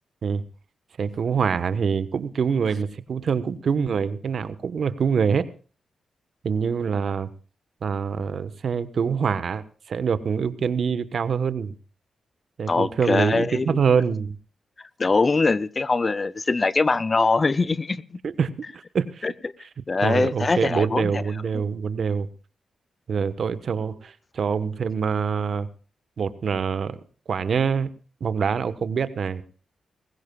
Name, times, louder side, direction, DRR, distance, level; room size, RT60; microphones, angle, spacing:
voice 1, 1.0-5.5 6.4-7.3 7.8-11.7 12.6-14.3 18.2-19.2 20.0-22.3 23.1-25.7 26.2-27.0 27.3-27.9 28.2-29.4, right 6 dB, 65° right, 1.2 m, -25 dB
voice 2, 12.7-13.8 15.0-18.0 19.2-19.3 19.9-21.2 21.5-21.6, left 3 dB, 35° left, 0.6 m, -22 dB
20.0 x 16.5 x 2.4 m
cardioid pair, 70°, 0 cm